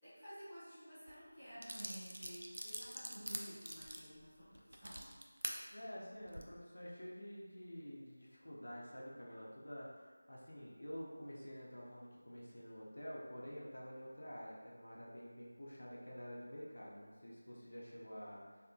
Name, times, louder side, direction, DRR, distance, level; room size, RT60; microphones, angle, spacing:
voice 1, 0.0-5.1, equal, ahead, -23 dB, 1.0 m, -53 dB
sound 1, 1.1-1.2 1.6-5.6 6.2-6.4, right 1 dB, 85° right, 0.3 m, -45 dB
voice 2, 5.7-18.7, equal, 75° left, -5 dB, 0.6 m, -49 dB
2.7 x 2.2 x 2.6 m, 1.4 s
figure-of-eight pair, 175°, 0 cm